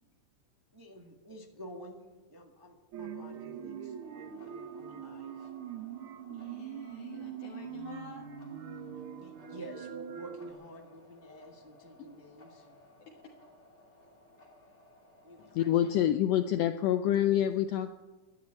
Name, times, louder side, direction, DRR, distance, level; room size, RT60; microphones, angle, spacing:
voice 1, 0.7-5.5 9.2-12.8 15.2-15.9, equal, 35° right, 1 dB, 0.3 m, -50 dB
sound 1, 2.9-10.5, right 8 dB, 75° right, 1.2 m, -43 dB
sound 2, 4.0-15.9, left 2 dB, 20° left, 2.7 m, -60 dB
voice 2, 6.3-8.3 12.0-12.1 13.0-13.3, left 6 dB, 50° left, -3 dB, 2.5 m, -48 dB
voice 3, 15.5-17.9, left 11 dB, 85° left, 9 dB, 1.4 m, -26 dB
12.5 x 10.5 x 8.9 m, 1.2 s
omnidirectional pair, 3.6 m